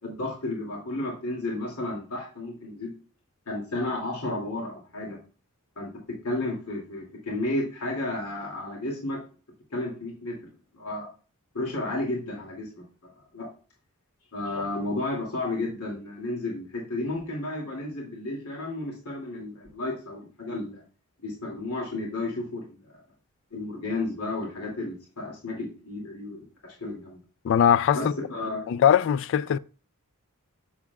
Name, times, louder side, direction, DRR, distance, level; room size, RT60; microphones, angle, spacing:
voice 1, 0.0-2.9 3.5-5.2 5.8-9.2 9.7-10.4 10.7-11.1 11.5-12.8 13.3-13.5 14.3-20.8 21.2-23.0 23.5-27.2 27.9-28.7, left 2 dB, 85° left, 2.5 m, -32 dB
voice 2, 27.4-28.1 28.7-29.6, left 8 dB, 55° left, 0.3 m, -21 dB
7.3 x 7.1 x 2.3 m
head